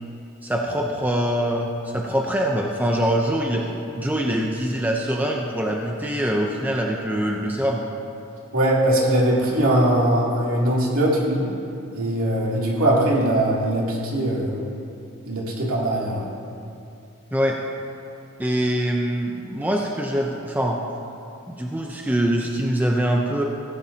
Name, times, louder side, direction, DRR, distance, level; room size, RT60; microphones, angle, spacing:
voice 1, 0.4-7.8 17.3-17.6 18.4-20.8 21.5-23.4, right 1 dB, 10° right, 0 dB, 0.7 m, -24 dB
voice 2, 8.5-11.4 11.9-14.6 15.2-16.3, right 1 dB, 70° right, -4 dB, 2.9 m, -21 dB
17.0 x 16.5 x 2.9 m, 2.6 s
head